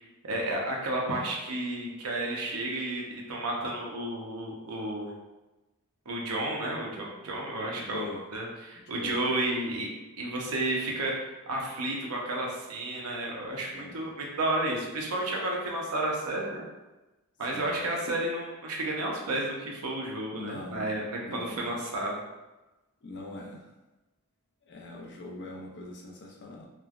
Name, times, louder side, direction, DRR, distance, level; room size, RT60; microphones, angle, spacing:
voice 1, 0.0-5.1 6.1-8.1 8.3-9.9 10.2-16.6 17.4-22.2, right 1 dB, 80° right, -1 dB, 0.6 m, -32 dB
voice 2, 7.6-8.2 8.8-9.2 13.7-14.1 17.5-17.7 20.3-20.9 21.2-21.7 23.0-23.7 24.7-26.7, left 2 dB, 55° left, 0 dB, 0.5 m, -42 dB
3.1 x 2.1 x 2.3 m, 1.1 s
head